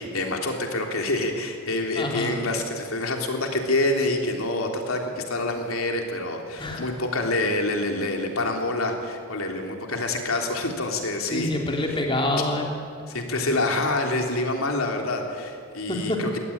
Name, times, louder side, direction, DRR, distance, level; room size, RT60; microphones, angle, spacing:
voice 1, 0.0-11.5 13.1-16.4, left 2 dB, 90° left, 2 dB, 3.6 m, -27 dB
voice 2, 1.9-2.4 6.6-6.9 11.3-12.8 15.9-16.2, left 1 dB, 25° left, 1 dB, 3.2 m, -26 dB
22.5 x 18.0 x 9.9 m, 2.3 s
head